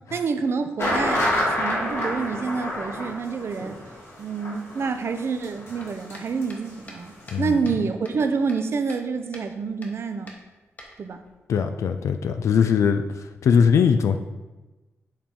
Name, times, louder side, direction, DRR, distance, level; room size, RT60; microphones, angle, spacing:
voice 1, 0.1-3.8 4.2-10.3 11.0-11.2, right 5 dB, 55° right, 8 dB, 0.6 m, -27 dB
sound 1, 0.8-6.4 6.7-6.8 7.2-7.3, left 1 dB, 60° left, 1.6 m, -28 dB
sound 2, 5.8-9.1 9.3-9.5 9.8-10.0 10.3-11.3, left 1 dB, 35° left, 1.1 m, -45 dB
voice 2, 7.3-7.7 11.5-14.2, left 6 dB, 80° left, 8 dB, 0.3 m, -21 dB
7.3 x 3.6 x 4.4 m, 1.1 s
wide cardioid pair, 100°, 5 cm